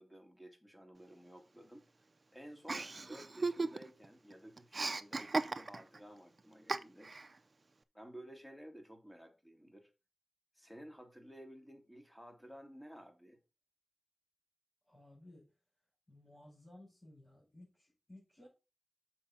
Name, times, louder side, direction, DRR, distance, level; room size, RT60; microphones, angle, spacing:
voice 1, 0.0-1.9 2.3-7.1 7.9-9.9 10.5-13.4, equal, 5° left, 2.6 m, -54 dB
Chuckle chortle, 2.7-4.1 4.3-6.0 6.7-7.3, right 3 dB, 50° right, 0.6 m, -36 dB
voice 2, 14.8-15.5 16.1-18.5, left 1 dB, 40° left, 5.1 m, -58 dB
7.0 x 5.0 x 5.9 m
wide cardioid pair, 60°, 0 cm